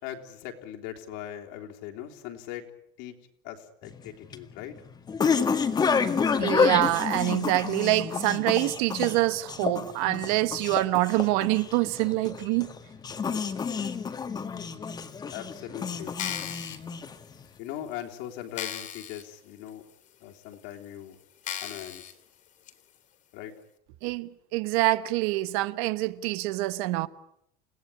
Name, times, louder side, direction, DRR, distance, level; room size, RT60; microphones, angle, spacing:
voice 1, 0.0-2.7 3.0-3.2 3.4-4.8 15.3-16.2 17.6-19.8 20.2-21.2 21.6-22.1 23.3-23.6, left 11 dB, 65° left, 3.6 m, -40 dB
sound 1, 3.9-17.4, left 5 dB, 20° left, 1.9 m, -29 dB
voice 2, 6.4-12.7 24.0-27.1, right 18 dB, 70° right, 1.3 m, -26 dB
sound 2, 16.1-16.8 17.4-17.5 18.0-18.1 18.5-19.2 19.7-19.8 20.5-20.6 21.4-22.1 22.7-22.8, left 10 dB, 40° left, 2.9 m, -36 dB
30.0 x 17.5 x 9.9 m
cardioid pair, 155°, 20 cm